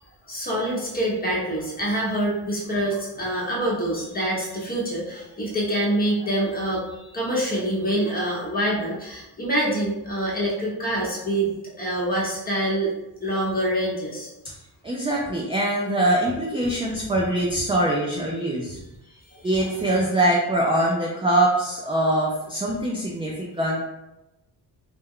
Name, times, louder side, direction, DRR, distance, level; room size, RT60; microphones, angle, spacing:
voice 1, 0.3-11.5 11.8-12.9 13.2-14.3, right 1 dB, 20° left, -5 dB, 0.9 m, -25 dB
voice 2, 14.8-18.8 19.4-23.8, right 1 dB, 15° right, -3 dB, 0.4 m, -23 dB
2.2 x 2.2 x 3.6 m, 0.93 s
cardioid pair, 100°, 41 cm